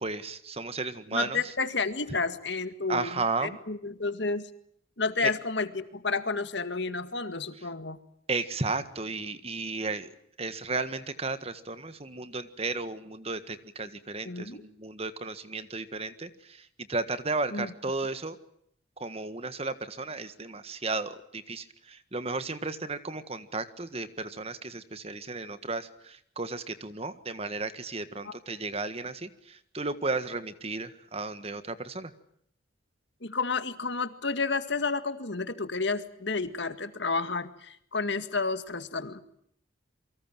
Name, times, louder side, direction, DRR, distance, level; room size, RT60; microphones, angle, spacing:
voice 1, 0.0-1.4 2.9-3.6 5.2-5.3 8.3-10.1 10.4-18.4 19.0-32.1, right 3 dB, 30° right, 12 dB, 1.6 m, -34 dB
voice 2, 1.1-4.5 5.0-8.0 14.2-14.6 17.5-17.7 28.2-28.4 33.2-39.2, left 4 dB, 65° left, 11 dB, 2.0 m, -31 dB
28.5 x 24.0 x 7.6 m, 0.68 s
head